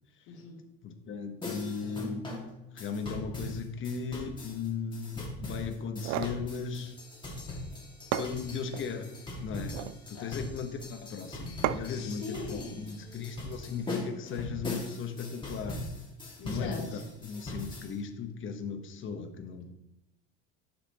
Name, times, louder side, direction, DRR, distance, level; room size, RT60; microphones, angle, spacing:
voice 1, 0.3-0.6 10.1-10.3 11.8-12.9 16.4-17.0, left 3 dB, 75° left, -4 dB, 2.6 m, -41 dB
voice 2, 0.8-2.3 2.7-7.0 8.2-9.1 9.4-9.8 10.1-15.8 16.4-16.9 17.2-19.7, left 5 dB, 40° left, 6 dB, 1.1 m, -37 dB
sound 1, 1.4-17.9, left 2 dB, 15° left, 2.0 m, -41 dB
sound 2, 5.8-6.4 7.7-7.8 8.1-8.9 9.6-10.0 11.6-12.1, right 12 dB, 60° right, 0.5 m, -33 dB
10.0 x 5.9 x 2.9 m, 0.90 s
cardioid pair, 120°, 30 cm